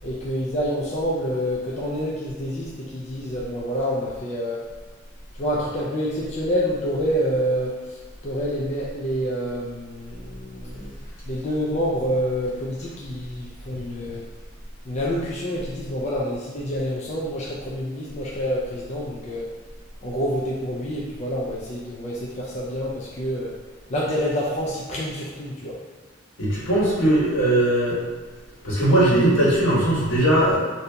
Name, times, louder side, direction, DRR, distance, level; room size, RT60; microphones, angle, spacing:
voice 1, 0.0-4.7 5.4-10.9 11.2-14.2 14.9-19.5 20.0-23.5 23.9-25.8, equal, 35° left, -5 dB, 0.4 m, -27 dB
voice 2, 26.4-28.0 28.6-30.6, right 1 dB, 75° left, -7 dB, 1.2 m, -19 dB
2.7 x 2.7 x 3.3 m, 1.4 s
head